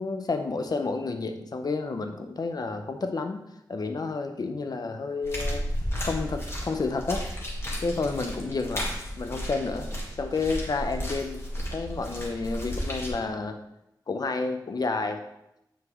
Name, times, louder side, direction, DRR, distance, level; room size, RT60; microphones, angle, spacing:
voice 1, 0.0-3.4 3.7-5.7 6.0-7.3 7.8-8.9 9.2-9.9 10.2-11.4 11.7-13.6 14.1-15.2, left 3 dB, 55° left, 6 dB, 0.7 m, -30 dB
sound 1, 5.2-13.1, equal, 35° left, 1.8 m, -33 dB
7.1 x 6.4 x 3.1 m, 0.84 s
wide cardioid pair, 95°, 8 cm